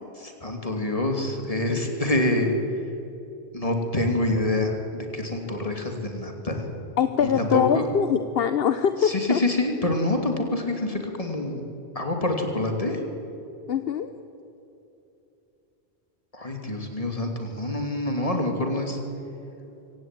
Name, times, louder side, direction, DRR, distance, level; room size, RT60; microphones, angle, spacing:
voice 1, 0.2-2.5 3.5-6.7 7.2-7.8 9.0-11.6 11.9-13.0 16.3-19.0, left 1 dB, 35° left, 3 dB, 2.9 m, -26 dB
voice 2, 7.0-9.4 13.7-14.1, left 8 dB, 65° left, 10 dB, 1.0 m, -23 dB
24.5 x 16.5 x 9.3 m, 2.9 s
omnidirectional pair, 1.1 m